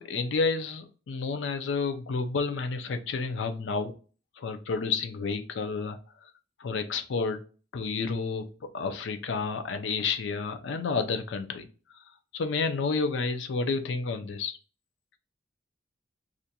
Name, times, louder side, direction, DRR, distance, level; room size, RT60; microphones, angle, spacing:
voice 1, 0.0-3.9 4.4-6.0 6.6-7.4 7.7-8.5 8.7-11.7 12.3-14.6, left 4 dB, 65° left, 8 dB, 0.4 m, -30 dB
2.5 x 2.2 x 2.7 m, 0.37 s
head